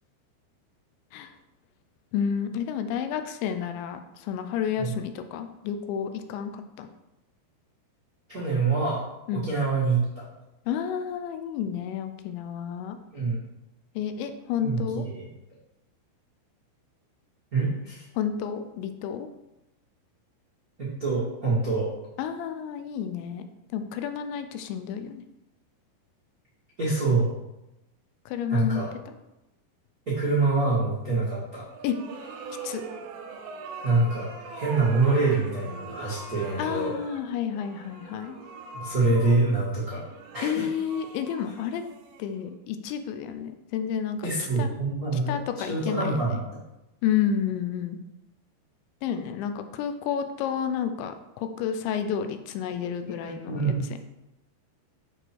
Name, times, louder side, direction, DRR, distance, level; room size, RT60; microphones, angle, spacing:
voice 1, 2.1-6.9 9.3-9.5 10.7-13.0 14.0-15.1 18.2-19.3 22.2-23.5 23.7-25.2 28.3-28.8 29.1-29.2 31.8-32.0 32.6-32.8 36.6-38.4 40.4-41.8 42.2-44.3 44.6-44.8 45.3-46.4 47.0-48.0 49.0-54.0, left 8 dB, 85° left, 8 dB, 2.9 m, -30 dB
voice 2, 8.3-9.0 9.3-10.2 13.1-13.3 14.6-15.3 17.5-18.0 20.8-21.9 26.8-27.3 28.5-28.9 30.1-31.6 33.8-37.0 38.7-40.0 40.3-40.7 44.2-46.4 53.0-54.0, right 3 dB, 60° right, -9 dB, 0.9 m, -25 dB
sound 1, 31.7-42.7, right 4 dB, 85° right, 3.0 m, -42 dB
7.8 x 4.8 x 4.5 m, 0.91 s
omnidirectional pair, 5.2 m